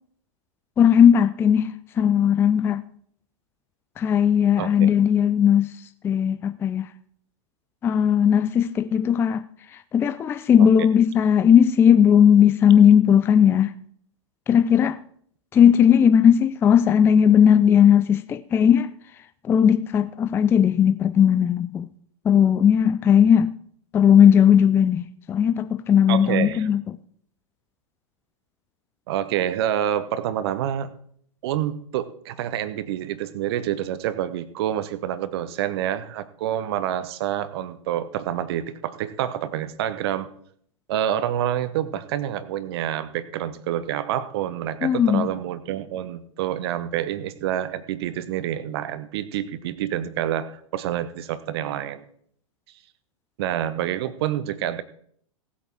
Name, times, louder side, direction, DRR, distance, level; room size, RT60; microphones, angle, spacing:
voice 1, 0.8-2.8 4.0-5.7 6.0-6.8 7.8-9.4 9.9-13.7 14.5-15.0 15.5-18.9 19.4-21.9 22.3-23.5 23.9-26.8 44.8-45.3, left 8 dB, 15° left, 0.4 m, -17 dB
voice 2, 4.6-4.9 10.6-10.9 26.1-26.7 29.1-30.9 31.4-40.3 40.9-52.0 53.4-54.8, right 11 dB, 45° right, 1.0 m, -27 dB
18.0 x 8.5 x 4.6 m
figure-of-eight pair, 100°, 17 cm